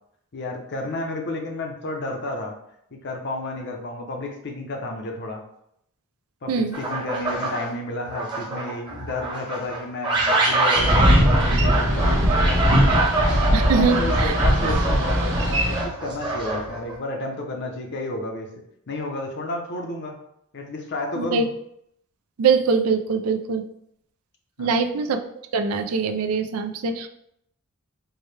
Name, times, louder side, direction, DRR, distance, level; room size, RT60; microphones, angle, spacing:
voice 1, 0.3-2.5 2.9-5.4 6.4-13.0 13.6-18.5 18.9-20.2 20.5-21.5 24.6-24.8, left 2 dB, 55° left, 2 dB, 0.6 m, -31 dB
sound 1, 6.7-7.7 8.0-17.0, right 2 dB, 20° right, 0.8 m, -25 dB
Boat Water vehicle, 10.8-15.8, equal, 60° right, 0.9 m, -20 dB
voice 2, 13.5-14.4 21.2-21.5 22.4-23.6 24.6-25.3 25.5-27.1, right 5 dB, 85° right, 6 dB, 0.4 m, -23 dB
4.6 x 2.1 x 3.2 m, 0.75 s
head